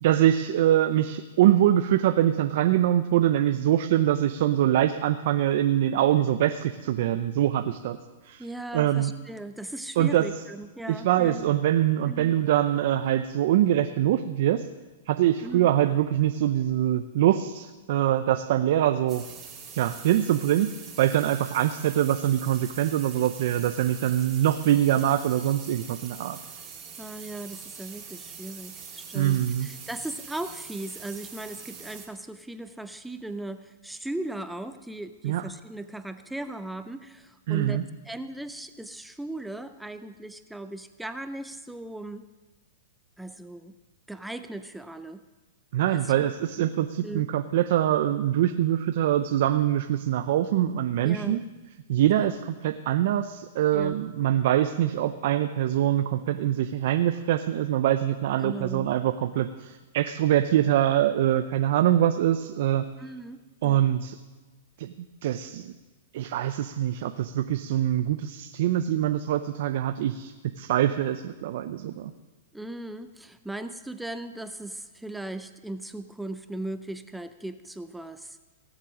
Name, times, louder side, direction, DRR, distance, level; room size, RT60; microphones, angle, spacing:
voice 1, 0.0-8.0 8.2-8.4 8.7-9.1 10.0-10.2 10.9-14.6 15.1-19.2 19.7-20.7 21.0-26.4 29.1-29.7 35.2-35.4 37.5-37.8 45.7-51.4 51.9-62.8 63.6-64.2 64.8-64.9 65.2-65.7 66.1-72.1, right 12 dB, 60° right, 8 dB, 0.6 m, -24 dB
voice 2, 8.4-11.5 12.0-12.3 15.4-15.7 27.0-42.3 43.2-43.7 44.1-45.2 45.8-46.3 46.6-46.7 47.0-47.3 51.0-51.4 52.1-52.3 53.7-54.0 58.4-58.9 63.0-63.8 72.5-78.4, right 1 dB, 5° right, 10 dB, 0.5 m, -38 dB
sound 1, 19.1-32.1, right 6 dB, 20° right, 2.2 m, -44 dB
18.0 x 7.4 x 6.2 m, 1.2 s
hypercardioid pair, 150°, 0 cm